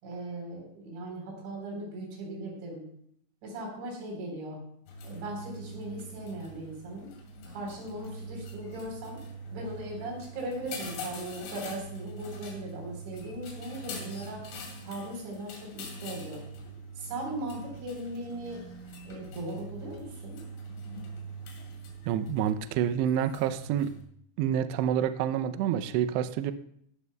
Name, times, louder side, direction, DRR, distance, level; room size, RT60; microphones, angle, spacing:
voice 1, 0.0-2.9 3.4-4.6 5.0-7.1 7.5-9.2 9.5-14.5 14.8-16.4 17.0-18.6 19.1-20.4, right 1 dB, 65° right, 0 dB, 6.0 m, -38 dB
sound 1, 4.9-24.0, right 1 dB, 80° left, 4.9 m, -43 dB
voice 2, 22.1-23.9 24.4-26.5, right 9 dB, 90° right, 10 dB, 2.4 m, -28 dB
18.0 x 12.0 x 2.2 m, 0.69 s
omnidirectional pair, 5.7 m